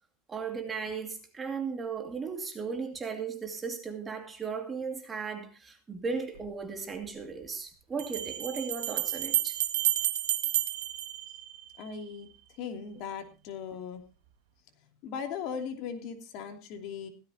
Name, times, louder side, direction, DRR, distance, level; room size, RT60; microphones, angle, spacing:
voice 1, 0.3-9.6, right 5 dB, 15° right, 2.3 m, -36 dB
Bell, 6.4-6.5 8.0-11.9, right 13 dB, 80° right, 1.7 m, -31 dB
voice 2, 11.8-12.3 12.6-14.0 15.0-17.1, left 6 dB, 45° left, 2.8 m, -38 dB
17.0 x 14.0 x 2.9 m
supercardioid pair, 155°, 0 cm